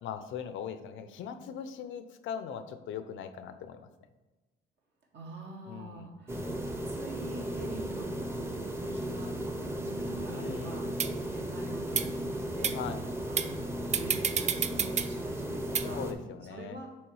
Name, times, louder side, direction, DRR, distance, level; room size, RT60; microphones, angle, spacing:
voice 1, 0.0-3.9 5.7-6.1 10.3-10.8 12.7-13.0 15.8-16.8, left 8 dB, 80° left, 10 dB, 0.6 m, -40 dB
voice 2, 5.1-6.5 6.9-8.1 8.7-9.4 9.6-10.9 11.2-12.3 12.5-12.8 13.3-16.0 16.5-16.9, right 2 dB, 60° right, -1 dB, 1.6 m, -45 dB
sound 1, 6.3-16.1, right 1 dB, 10° right, 0.7 m, -35 dB
sound 2, 11.0-11.1 11.9-12.1 12.6-12.8 13.4-13.5 13.9-15.1 15.8-15.9, right 7 dB, 35° right, 0.4 m, -29 dB
6.2 x 3.3 x 4.8 m, 1.1 s
cardioid pair, 90°, 20 cm